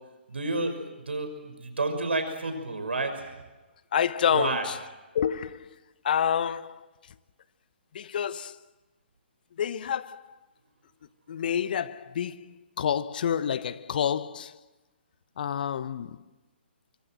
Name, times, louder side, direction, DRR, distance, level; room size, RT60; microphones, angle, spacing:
voice 1, 0.3-3.3 4.3-4.7, right 2 dB, 75° right, 6.0 m, -30 dB
voice 2, 3.9-4.8 5.1-5.7 6.0-6.9 7.9-8.6 9.6-10.2 11.3-14.6 15.4-16.2, left 8 dB, 50° left, 1.0 m, -28 dB
25.5 x 24.5 x 7.8 m
figure-of-eight pair, 135°, 6 cm